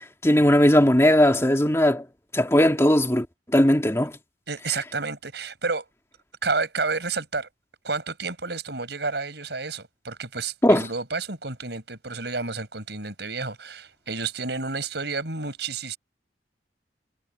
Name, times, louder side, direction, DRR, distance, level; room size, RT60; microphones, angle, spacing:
voice 1, 0.2-2.0 2.3-3.3 3.5-4.2 10.6-10.8, left 1 dB, 15° left, 2.2 m, -18 dB
voice 2, 4.5-5.9 6.4-7.5 7.8-16.0, right 4 dB, 70° right, 5.2 m, -30 dB
head